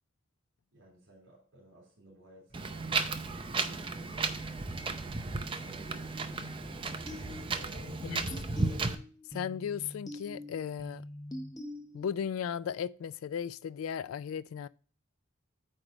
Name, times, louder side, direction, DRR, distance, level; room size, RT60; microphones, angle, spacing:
voice 1, 0.7-3.4 3.9-5.1 5.6-6.9 7.6-8.2, right 1 dB, 65° right, 3.7 m, -56 dB
sound 1, 2.5-8.8, equal, 45° left, 1.7 m, -57 dB
Wind, 2.5-8.9, right 3 dB, 25° right, 0.5 m, -34 dB
sound 2, 6.3-12.3, left 1 dB, 20° left, 0.7 m, -45 dB
voice 2, 9.3-11.0 11.9-14.7, left 8 dB, 85° left, 0.3 m, -36 dB
8.8 x 3.3 x 6.1 m
head